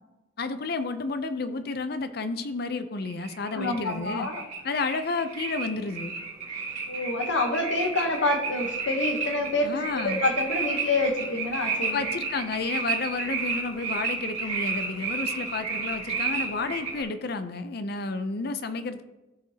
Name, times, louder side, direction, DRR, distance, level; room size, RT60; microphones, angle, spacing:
voice 1, 0.4-4.3 4.6-6.1 9.6-10.2 11.9-19.0, left 3 dB, 55° left, 10 dB, 0.6 m, -31 dB
sound 1, 3.0-17.0, right 5 dB, 40° right, 2.9 m, -32 dB
voice 2, 3.5-4.4 6.9-12.0, left 2 dB, 75° left, 3 dB, 1.1 m, -27 dB
14.5 x 5.1 x 2.8 m, 1.0 s
head